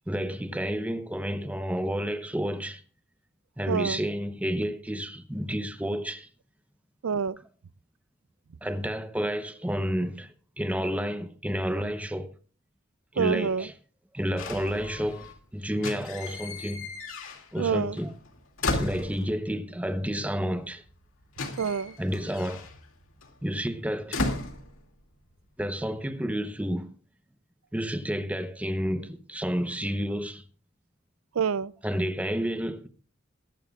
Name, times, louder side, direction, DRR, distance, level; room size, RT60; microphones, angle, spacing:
voice 1, 0.1-2.8 3.6-6.3 8.6-12.3 13.1-13.7 14.1-16.9 17.5-18.1 18.7-20.8 22.0-22.7 23.4-24.3 25.6-26.9 27.7-30.4 31.8-32.9, equal, 5° right, 0.8 m, -30 dB
voice 2, 3.7-4.0 7.0-7.4 13.2-13.6 17.6-18.0 21.6-21.9 31.4-31.7, right 6 dB, 85° right, 0.5 m, -27 dB
sound 1, 14.4-15.4 15.7-17.7 18.0-19.6 20.6-20.7 20.8-25.3 25.6-26.1, left 2 dB, 75° left, 2.4 m, -35 dB
23.0 x 11.0 x 2.4 m
head